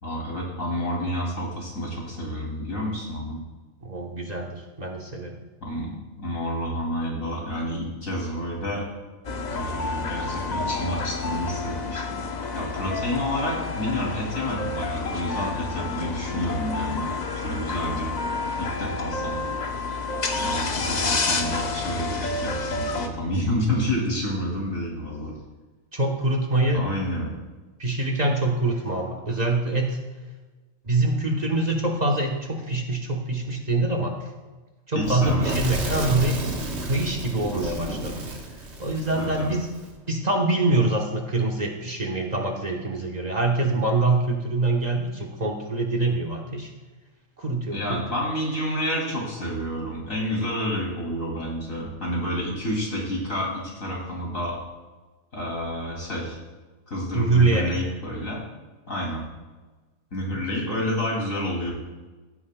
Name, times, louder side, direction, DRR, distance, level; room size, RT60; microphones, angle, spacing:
voice 1, 0.0-3.4 5.6-8.9 9.5-12.2 12.5-17.1 17.4-18.1 18.6-19.4 20.4-25.3 26.7-27.3 34.9-35.6 37.4-37.7 39.1-39.5 47.7-54.6 55.3-56.4 56.9-58.4 58.9-59.3 60.1-61.7, equal, 80° left, -2 dB, 3.1 m, -29 dB
voice 2, 3.8-5.4 25.9-26.9 27.8-30.0 30.8-34.3 34.9-36.4 36.8-38.3 38.8-39.7 40.1-46.7 47.4-48.0 57.1-57.7, right 2 dB, 35° right, 1 dB, 1.1 m, -24 dB
sound 1, 9.2-23.1, left 4 dB, 40° left, 0.7 m, -29 dB
Fire / Explosion, 35.0-39.9, right 2 dB, 60° right, 1.5 m, -32 dB
15.5 x 9.4 x 2.2 m, 1.2 s
omnidirectional pair, 1.4 m